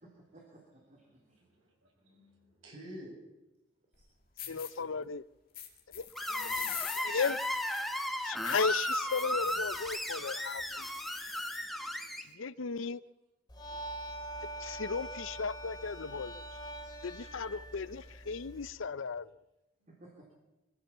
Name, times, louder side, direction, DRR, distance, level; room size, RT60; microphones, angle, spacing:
voice 1, 0.0-1.2 4.4-5.0 19.9-20.3, right 1 dB, 35° right, 3.5 m, -58 dB
voice 2, 0.9-3.1 6.3-6.9 12.2-12.4 19.8-20.0, equal, 85° right, 7.8 m, -52 dB
sound 1, 3.9-4.0 4.4-4.7 5.5-11.7, left 10 dB, 45° left, 2.8 m, -44 dB
voice 3, 4.5-5.2 5.9-6.5 6.8-7.4 8.2-10.9 12.3-13.0 14.6-16.4 17.0-19.3, left 5 dB, 75° left, 0.6 m, -36 dB
Screech, 6.2-12.2, equal, ahead, 1.2 m, -35 dB
sound 2, 13.5-18.7, right 1 dB, 20° left, 2.6 m, -44 dB
24.0 x 15.0 x 7.3 m
head